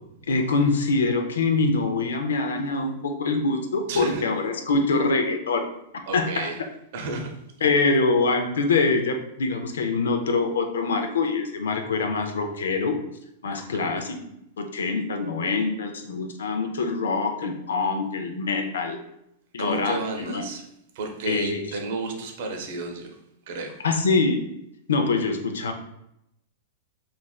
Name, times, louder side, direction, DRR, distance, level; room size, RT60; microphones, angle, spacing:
voice 1, 0.3-5.7 6.1-6.5 7.6-13.0 13.4-14.2 14.6-19.0 19.5-20.4 21.3-21.6 23.8-24.4 24.9-25.7, left 3 dB, 90° left, 5 dB, 0.4 m, -24 dB
voice 2, 3.9-4.2 6.1-6.6 6.9-7.3 13.7-13.9 19.6-20.6 20.9-23.2 23.5-23.8, right 3 dB, 60° right, 2 dB, 0.6 m, -32 dB
3.1 x 2.5 x 2.3 m, 0.80 s
hypercardioid pair, 130°, 0 cm